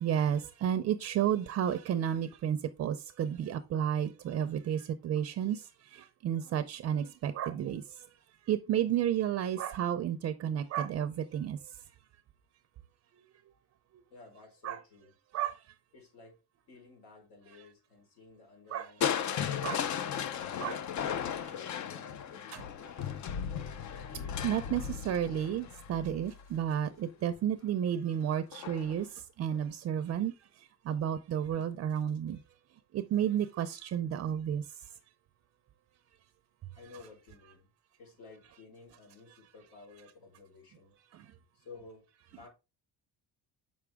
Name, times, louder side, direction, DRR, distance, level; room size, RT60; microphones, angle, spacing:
voice 1, 0.0-7.8 8.5-11.6 14.6-14.8 15.3-15.6 18.7-18.9 19.6-19.8 20.6-20.8 24.4-30.3 30.9-32.4 32.9-34.6 41.1-41.2, right 9 dB, 40° right, 0.5 m, -32 dB
voice 2, 14.1-15.2 15.9-16.4 16.7-20.5 21.1-23.1 36.7-37.7 38.0-40.9 41.5-42.5, left 4 dB, 80° left, 4.4 m, -54 dB
Crushing, 19.0-27.0 28.5-29.0 29.5-29.6, left 8 dB, 50° left, 0.7 m, -36 dB
7.4 x 6.1 x 3.5 m
cardioid pair, 155°, 36 cm